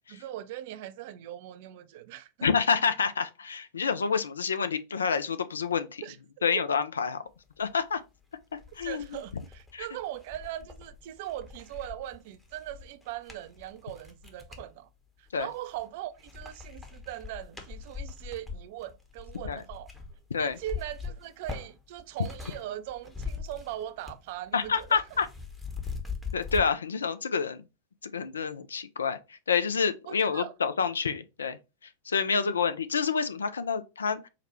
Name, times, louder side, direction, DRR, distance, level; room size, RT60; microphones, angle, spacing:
voice 1, 0.1-2.5 6.0-6.2 6.5-6.7 8.8-14.9 15.2-19.9 20.4-25.0 30.1-30.5 32.3-32.5, right 13 dB, 50° right, 0.4 m, -40 dB
voice 2, 2.4-6.0 6.4-7.2 7.6-8.0 8.5-9.2 9.7-9.9 15.3-15.5 19.4-19.6 20.3-20.6 24.5-25.3 26.3-27.6 28.0-31.6 32.1-34.2, left 6 dB, 70° left, 0.4 m, -28 dB
sound 1, 8.0-8.1 8.5-14.7 15.3-15.9 16.2-22.6 22.9-24.3 24.5-26.7, left 5 dB, 10° left, 0.8 m, -41 dB
4.7 x 2.2 x 2.9 m
figure-of-eight pair, 90°, 0 cm